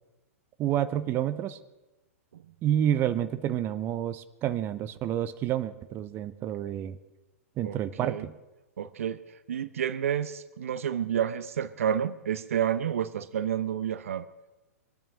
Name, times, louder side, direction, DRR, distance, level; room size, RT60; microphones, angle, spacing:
voice 1, 0.6-1.6 2.6-7.0 7.6-8.3, right 11 dB, 30° right, 12 dB, 0.8 m, -29 dB
voice 2, 7.6-8.2 8.8-14.3, right 9 dB, 65° right, 15 dB, 0.8 m, -30 dB
23.5 x 8.9 x 6.3 m, 1.1 s
figure-of-eight pair, 110°, 8 cm